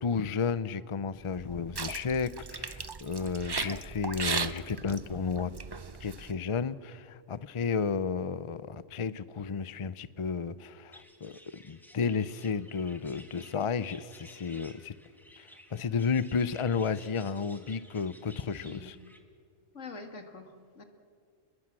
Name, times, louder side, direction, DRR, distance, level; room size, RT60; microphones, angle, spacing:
voice 1, 0.0-5.5 6.0-11.4 11.7-14.9 15.4-19.0, left 5 dB, 35° left, 15 dB, 0.5 m, -32 dB
sound 1, 1.3-6.3, right 4 dB, 30° right, 0.5 m, -37 dB
sound 2, 10.9-19.2, equal, ahead, 2.0 m, -55 dB
voice 2, 18.5-18.9 19.7-20.8, left 4 dB, 75° left, 5 dB, 2.3 m, -45 dB
29.5 x 21.5 x 7.6 m, 2.2 s
omnidirectional pair, 1.3 m